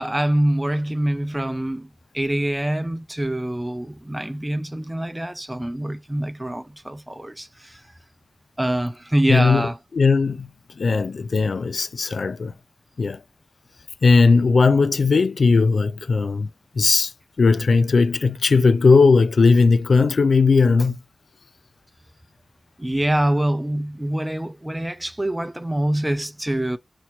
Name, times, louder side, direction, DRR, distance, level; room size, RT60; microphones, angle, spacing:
voice 1, 0.0-7.8 8.6-9.8 22.8-26.8, right 1 dB, 15° right, 0.5 m, -25 dB
voice 2, 9.3-10.5 10.8-12.5 13.0-13.2 14.0-16.5 16.8-17.1 17.4-21.0, left 4 dB, 75° left, 0.4 m, -17 dB
4.4 x 2.9 x 3.0 m
wide cardioid pair, 60°, 0 cm